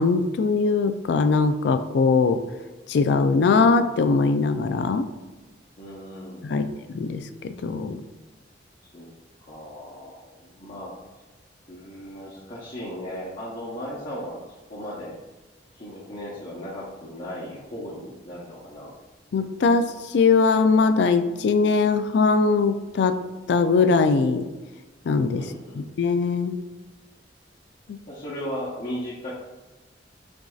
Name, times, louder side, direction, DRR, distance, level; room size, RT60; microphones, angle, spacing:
voice 1, 0.0-2.4 2.9-5.1 6.4-8.0 19.3-23.2 23.5-24.5 25.0-25.4 25.8-26.6 27.9-28.0, left 4 dB, 65° left, 10 dB, 0.3 m, -21 dB
voice 2, 5.8-6.7 8.9-9.1 9.4-10.9 11.7-14.4 14.7-15.2 15.7-18.9 25.4-25.9 28.1-29.3, equal, 45° left, -8 dB, 0.8 m, -36 dB
6.0 x 2.6 x 2.3 m, 1.2 s
head